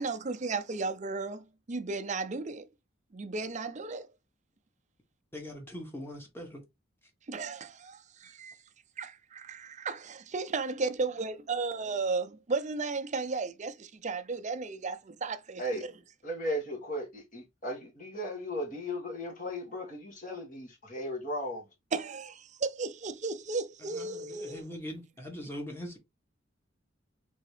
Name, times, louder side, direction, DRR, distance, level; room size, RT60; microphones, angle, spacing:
voice 1, 0.0-2.7 3.1-4.1 7.3-8.5 9.0-15.6 21.9-24.6, right 4 dB, 35° right, 0.5 m, -34 dB
voice 2, 5.3-6.6 23.8-26.0, equal, 10° left, 1.3 m, -41 dB
voice 3, 16.2-21.7, equal, 40° left, 1.7 m, -36 dB
3.8 x 3.5 x 3.3 m
head